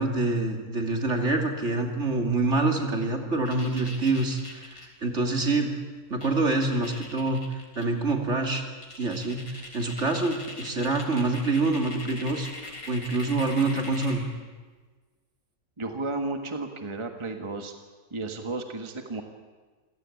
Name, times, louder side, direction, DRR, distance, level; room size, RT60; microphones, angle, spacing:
voice 1, 0.0-5.7 6.1-7.4 7.8-8.6 9.0-14.2, right 2 dB, 55° right, 3 dB, 3.0 m, -26 dB
sound 1, 3.4-4.9 5.9-6.0 6.2-7.8 8.3-8.4 8.8-14.3, left 2 dB, 85° left, 4.4 m, -42 dB
voice 2, 15.8-17.7 18.1-19.2, right 2 dB, 20° right, 5 dB, 1.5 m, -33 dB
27.0 x 17.0 x 8.6 m, 1.4 s
omnidirectional pair, 1.5 m